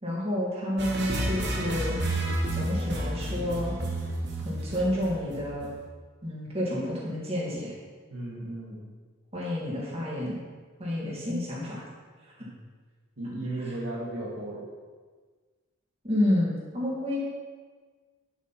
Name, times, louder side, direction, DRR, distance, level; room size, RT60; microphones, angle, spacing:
voice 1, 0.0-2.0 2.5-3.8 4.4-5.7 6.2-7.7 9.3-10.4 10.8-11.8 13.6-13.7 16.0-17.2, left 1 dB, 30° right, -5 dB, 2.7 m, -29 dB
sound 1, 0.8-5.8, right 1 dB, 55° right, 1.4 m, -30 dB
voice 2, 8.1-8.8 11.1-11.2 12.4-12.5 13.2-14.7, right 1 dB, 90° right, -4 dB, 2.4 m, -35 dB
9.4 x 8.2 x 4.6 m, 1.4 s
head